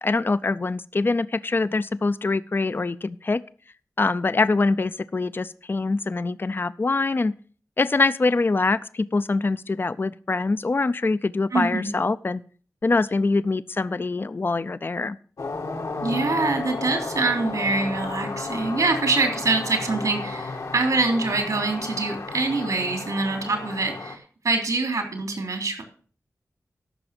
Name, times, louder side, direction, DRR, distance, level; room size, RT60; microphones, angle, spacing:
voice 1, 0.0-3.4 4.0-7.3 7.8-12.4 12.8-15.2, left 3 dB, 40° left, 15 dB, 0.4 m, -24 dB
voice 2, 11.5-11.9 16.0-25.8, right 3 dB, 80° right, 4 dB, 3.4 m, -25 dB
sound 1, 15.4-24.2, left 3 dB, 80° left, 1.7 m, -33 dB
14.0 x 6.0 x 5.9 m, 0.42 s
wide cardioid pair, 70°, 6 cm